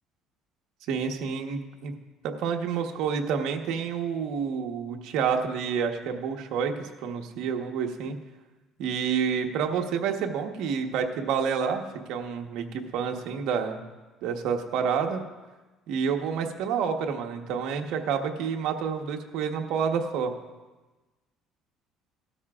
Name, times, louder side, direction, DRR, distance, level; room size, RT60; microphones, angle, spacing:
voice 1, 0.9-1.9 2.2-8.1 8.8-11.8 12.1-13.8 14.2-15.2 15.9-20.3, right 6 dB, 75° right, 3 dB, 1.1 m, -29 dB
17.0 x 12.5 x 2.4 m, 1.2 s
cardioid pair, 135°, 0 cm